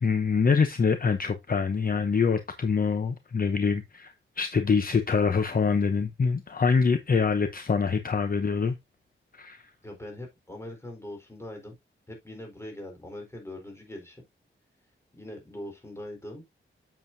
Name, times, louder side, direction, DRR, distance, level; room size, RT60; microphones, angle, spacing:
voice 1, 0.0-8.7 9.3-9.7, left 5 dB, 45° left, 0.8 m, -25 dB
voice 2, 9.8-11.8 12.1-14.2 15.1-16.4, left 1 dB, 10° left, 4.1 m, -41 dB
8.2 x 7.1 x 2.7 m
wide cardioid pair, 105°, 21 cm